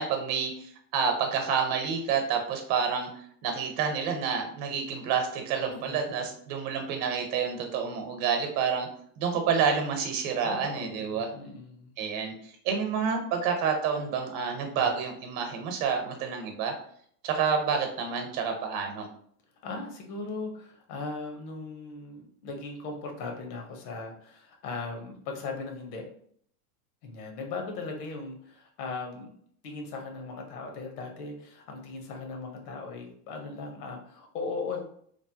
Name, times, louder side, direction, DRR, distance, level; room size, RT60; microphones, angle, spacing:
voice 1, 0.0-3.1 3.4-8.9 9.2-11.3 12.0-16.7 17.2-19.1, right 6 dB, 50° right, 4 dB, 0.8 m, -29 dB
voice 2, 10.4-11.9 14.7-14.8 19.6-26.0 27.0-29.3 29.6-34.8, left 3 dB, 80° left, 3 dB, 1.0 m, -38 dB
3.2 x 2.0 x 2.8 m, 0.62 s
supercardioid pair, 120°, 45 cm